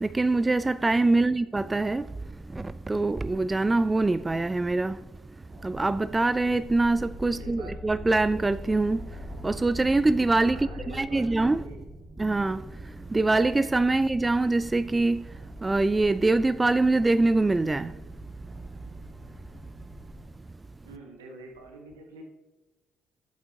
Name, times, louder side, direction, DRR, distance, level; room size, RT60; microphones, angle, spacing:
voice 1, 0.0-2.1 2.5-5.0 5.6-9.0 9.4-11.7 12.2-12.6 13.1-15.3 15.6-17.9, right 2 dB, 20° right, 0.3 m, -24 dB
voice 2, 1.1-1.5 7.3-7.8 10.4-11.8 20.8-22.2, right 2 dB, 80° right, 1.3 m, -46 dB
sound 1, 5.5-20.2, left 1 dB, 45° right, 2.1 m, -45 dB
11.5 x 7.9 x 2.8 m
figure-of-eight pair, 45°, 0 cm